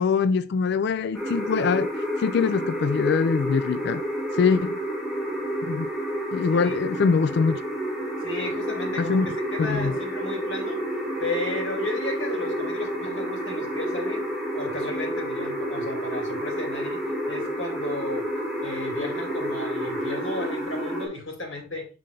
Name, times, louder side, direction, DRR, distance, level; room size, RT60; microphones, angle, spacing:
voice 1, 0.0-1.9 2.2-4.0 4.4-4.8 5.7-5.9 6.3-7.6 9.0-9.3 9.6-9.9, left 5 dB, 60° left, 0.3 m, -23 dB
sound 1, 1.1-21.1, equal, ahead, 1.9 m, -30 dB
voice 2, 8.2-10.8 11.2-14.2 14.5-17.0 17.3-18.3 18.6-21.9, left 2 dB, 85° left, 2.6 m, -34 dB
7.6 x 3.8 x 3.3 m
head